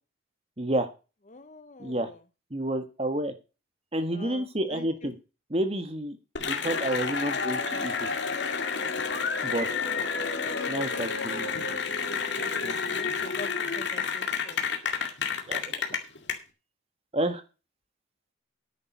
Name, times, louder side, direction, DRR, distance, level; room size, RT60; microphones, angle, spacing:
voice 1, 0.6-0.9 1.8-2.1 2.5-3.3 3.9-5.1 5.5-6.2 6.4-7.9 9.4-9.7 10.7-11.5 12.6-12.8 15.5-15.6 17.1-17.4, right 1 dB, 30° right, 1.4 m, -29 dB
voice 2, 1.3-2.2 4.1-4.9 9.9-10.7 13.0-14.6, left 3 dB, 40° left, 0.7 m, -45 dB
Cheering / Applause, 6.4-16.3, left 5 dB, 65° left, 2.2 m, -30 dB
10.5 x 9.1 x 5.4 m
head